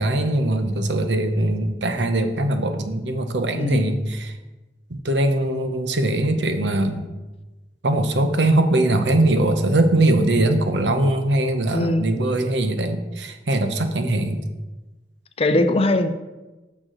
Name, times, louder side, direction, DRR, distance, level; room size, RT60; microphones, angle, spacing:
voice 1, 0.0-4.3 4.9-7.1 7.8-14.4 15.5-15.7, right 1 dB, 90° right, 7 dB, 0.9 m, -21 dB
voice 2, 3.5-4.0 11.7-12.1 15.4-16.1, left 2 dB, 35° left, 8 dB, 0.5 m, -20 dB
6.4 x 6.2 x 6.2 m, 1.1 s
head